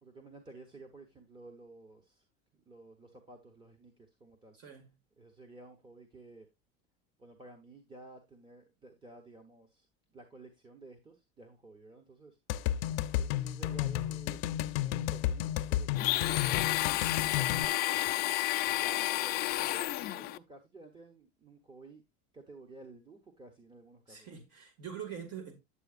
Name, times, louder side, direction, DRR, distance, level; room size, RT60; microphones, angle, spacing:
voice 1, 0.0-2.2 2.5-4.6 5.2-6.5 7.2-12.8 13.1-14.4 14.7-18.1 18.7-22.0 22.3-24.3, right 2 dB, 15° right, 1.1 m, -53 dB
voice 2, 4.5-4.9 24.1-25.5, right 8 dB, 50° right, 2.1 m, -44 dB
sound 1, 12.5-17.7, left 12 dB, 85° left, 0.7 m, -32 dB
Domestic sounds home sounds, 15.9-20.4, left 17 dB, 35° left, 0.4 m, -31 dB
10.0 x 7.5 x 2.5 m
cardioid pair, 155°, 30 cm